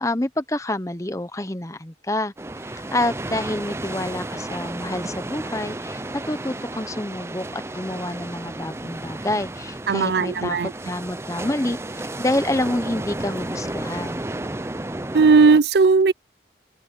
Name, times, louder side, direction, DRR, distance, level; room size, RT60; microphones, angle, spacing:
voice 1, 0.0-2.3 2.6-10.6 10.8-14.2, left 1 dB, 15° left, 0.9 m, -28 dB
sound 1, 2.4-15.6, right 2 dB, 15° right, 0.5 m, -33 dB
voice 2, 9.9-10.7 15.1-16.1, right 4 dB, 70° right, 0.4 m, -16 dB
head